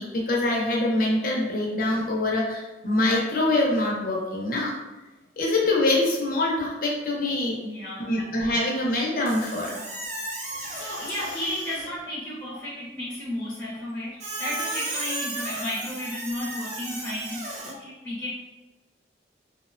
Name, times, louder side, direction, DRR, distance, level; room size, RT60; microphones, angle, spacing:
voice 1, 0.0-4.7 5.4-7.6 8.1-9.8, left 2 dB, 50° left, -2 dB, 0.6 m, -24 dB
voice 2, 7.6-8.2 10.3-18.3, left 1 dB, 5° left, -9 dB, 0.6 m, -33 dB
Squeak, 9.3-12.0 14.2-17.7, right 2 dB, 40° right, 0.5 m, -34 dB
2.6 x 2.1 x 2.4 m, 1.1 s
head